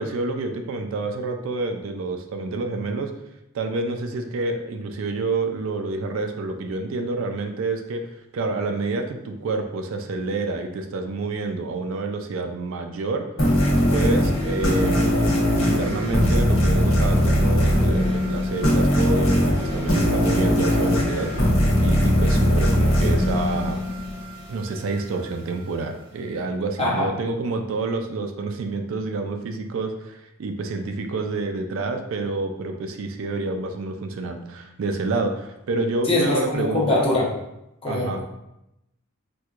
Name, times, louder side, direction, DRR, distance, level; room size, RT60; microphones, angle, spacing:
voice 1, 0.0-3.1 3.5-13.3 13.9-23.8 24.5-37.1 37.9-38.2, right 3 dB, 65° right, 5 dB, 0.3 m, -28 dB
sound 1, 13.4-24.6, equal, 65° left, 1.1 m, -20 dB
voice 2, 26.8-27.1 36.0-37.3 37.8-38.2, left 2 dB, 25° left, -5 dB, 0.8 m, -22 dB
4.4 x 2.2 x 2.4 m, 0.88 s
head